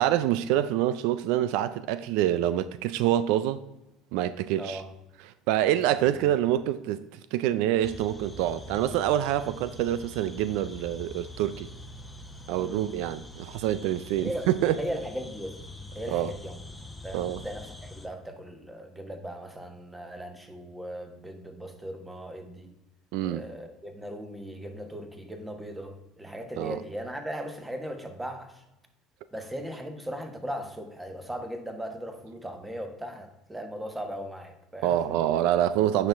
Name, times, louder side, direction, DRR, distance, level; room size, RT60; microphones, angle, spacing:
voice 1, 0.0-3.6 4.1-4.8 5.5-11.7 12.5-14.8 16.1-16.3 17.1-17.4 23.1-23.5 26.6-26.8 34.8-36.1, right 12 dB, 75° right, 0.3 m, -26 dB
voice 2, 4.6-4.9 5.9-6.3 12.6-12.8 14.2-14.5 14.8-15.6 15.9-16.6 17.0-22.7 23.2-28.6 29.3-35.2, equal, 10° right, 1.3 m, -38 dB
sound 1, 7.8-18.1, left 2 dB, 10° left, 0.9 m, -44 dB
8.7 x 5.8 x 3.5 m
supercardioid pair, 90°, 0 cm